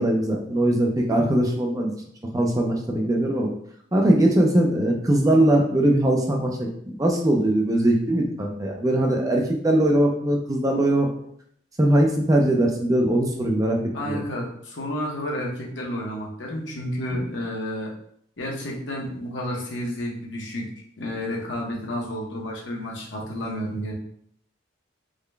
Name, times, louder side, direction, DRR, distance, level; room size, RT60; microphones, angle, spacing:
voice 1, 0.0-1.9 2.3-3.5 3.9-11.1 11.8-13.8 14.0-14.2, right 1 dB, 20° right, 1 dB, 0.4 m, -21 dB
voice 2, 13.9-17.9 18.4-20.6 21.0-23.9, equal, 70° left, -2 dB, 0.8 m, -31 dB
3.8 x 2.2 x 3.2 m, 0.66 s
head